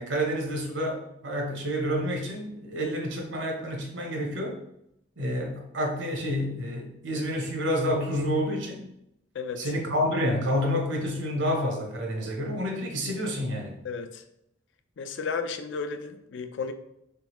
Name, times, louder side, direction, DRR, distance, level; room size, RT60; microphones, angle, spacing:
voice 1, 0.0-4.6 5.2-8.9 9.6-13.8, equal, 80° right, 1 dB, 0.9 m, -29 dB
voice 2, 9.3-9.7 13.8-14.2 15.0-16.7, left 5 dB, 75° left, 8 dB, 0.4 m, -33 dB
3.6 x 3.4 x 3.0 m, 0.80 s
head